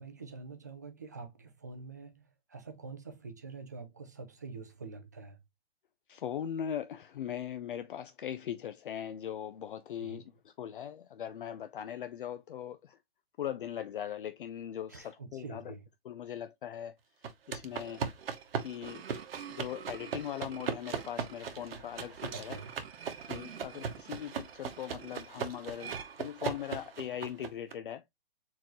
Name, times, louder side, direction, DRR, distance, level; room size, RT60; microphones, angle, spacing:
voice 1, 0.0-5.4 10.0-10.2 14.9-15.9 22.3-22.8, right 4 dB, 20° right, 0.4 m, -46 dB
voice 2, 6.1-10.2 10.6-13.0 13.4-15.7 16.1-16.9 17.5-18.0 18.6-19.0 19.5-22.6 23.3-28.0, left 10 dB, 60° left, 0.5 m, -40 dB
sound 1, 17.2-27.7, right 6 dB, 70° right, 1.2 m, -39 dB
sound 2, 17.6-26.9, right 8 dB, 90° right, 0.9 m, -49 dB
4.6 x 3.8 x 3.0 m
hypercardioid pair, 175°, 30 cm